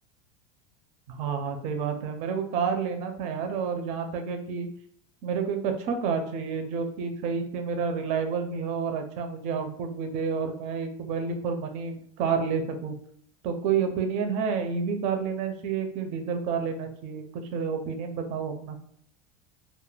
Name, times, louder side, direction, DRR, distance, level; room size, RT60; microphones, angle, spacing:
voice 1, 1.1-4.7 5.2-13.0 13.4-18.8, right 6 dB, 45° right, 5 dB, 0.4 m, -29 dB
2.2 x 2.1 x 3.1 m, 0.62 s
supercardioid pair, 145°, 17 cm